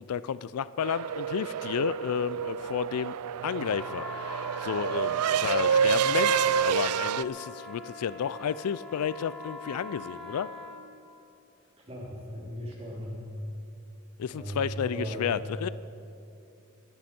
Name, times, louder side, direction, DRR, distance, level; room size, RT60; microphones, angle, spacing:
voice 1, 0.0-3.2 3.4-10.5 14.2-15.7, left 8 dB, 85° left, 17 dB, 0.4 m, -32 dB
sound 1, 0.8-7.2, right 7 dB, 85° right, 0.4 m, -28 dB
sound 2, 3.6-10.8, left 2 dB, ahead, 1.8 m, -43 dB
voice 2, 11.9-13.3 14.3-15.3, equal, 30° right, -3 dB, 3.0 m, -37 dB
20.5 x 11.5 x 4.4 m, 2.7 s
head